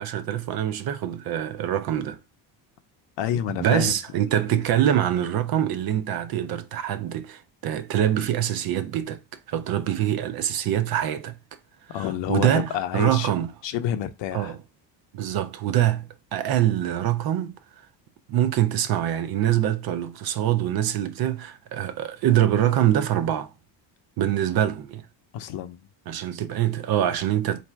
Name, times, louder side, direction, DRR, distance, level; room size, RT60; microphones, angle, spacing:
voice 1, 0.0-2.2 3.6-9.2 9.5-11.4 11.9-13.5 14.3-14.6 15.1-17.5 18.3-23.5 24.2-25.0 26.1-27.6, right 11 dB, 55° right, 0.5 m, -24 dB
voice 2, 3.2-4.0 4.5-4.6 11.9-13.3 13.6-14.6 25.3-25.8, left 11 dB, 65° left, 0.7 m, -28 dB
4.1 x 2.6 x 4.5 m
cardioid pair, 160°, 46 cm